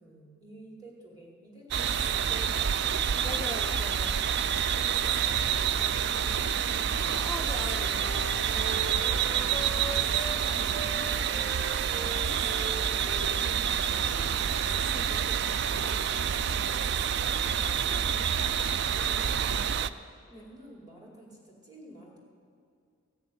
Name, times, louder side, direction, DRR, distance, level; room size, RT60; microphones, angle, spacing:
voice 1, 0.0-3.3 4.8-8.0 10.0-14.6 15.1-17.8 18.9-19.9 20.3-22.2, right 2 dB, 20° right, -2 dB, 2.5 m, -50 dB
sound 1, 1.7-19.9, right 8 dB, 55° right, 0.3 m, -28 dB
voice 2, 3.2-4.3 7.1-8.7 9.9-10.1 13.4-13.9 14.9-15.2 17.5-18.3 20.3-20.4, left 1 dB, 15° left, 4 dB, 0.5 m, -43 dB
Wind instrument woodwind instrument, 6.9-10.4 10.7-15.2, right 1 dB, ahead, 1.5 m, -42 dB
15.5 x 6.6 x 9.2 m, 2.4 s
head